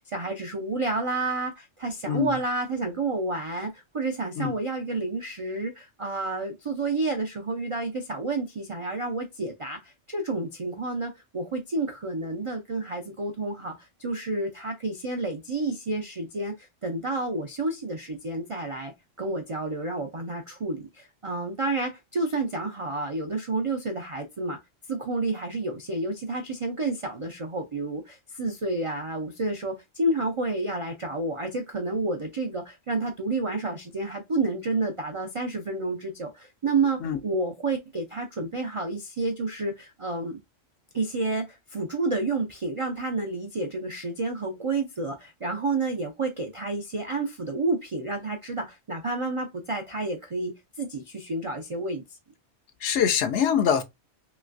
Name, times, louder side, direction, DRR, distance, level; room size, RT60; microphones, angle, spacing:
voice 1, 0.0-18.9 19.2-24.6 24.9-40.4 40.9-50.5 50.8-52.0, right 2 dB, 55° right, 0.3 m, -30 dB
voice 2, 52.8-53.8, left 8 dB, 70° left, 0.8 m, -23 dB
3.1 x 3.0 x 2.4 m
omnidirectional pair, 1.3 m